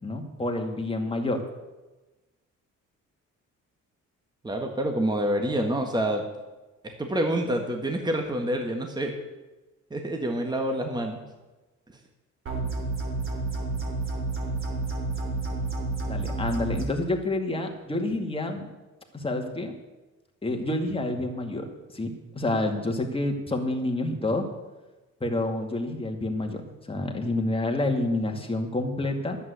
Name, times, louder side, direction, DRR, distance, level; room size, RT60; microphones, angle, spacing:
voice 1, 0.0-1.4 16.1-18.7 19.1-19.7 20.4-21.7 21.9-24.5 25.2-29.4, left 2 dB, 20° left, 2 dB, 2.3 m, -28 dB
voice 2, 4.4-6.3 6.8-9.1 9.9-11.2, right 1 dB, 15° right, 3 dB, 1.7 m, -27 dB
sound 1, 12.5-16.8, right 3 dB, 45° right, 3.6 m, -30 dB
11.0 x 8.4 x 8.2 m, 1.1 s
cardioid pair, 90°, 30 cm